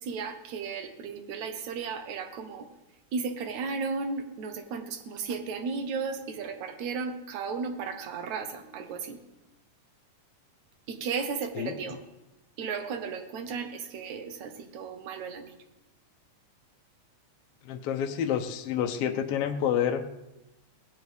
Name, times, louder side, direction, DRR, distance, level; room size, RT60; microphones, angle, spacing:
voice 1, 0.0-2.7 3.1-9.2 10.9-12.0 12.6-15.6, right 5 dB, 70° right, 7 dB, 2.5 m, -34 dB
voice 2, 17.6-20.0, left 9 dB, 70° left, 4 dB, 1.5 m, -28 dB
19.0 x 16.0 x 3.5 m, 0.97 s
omnidirectional pair, 3.6 m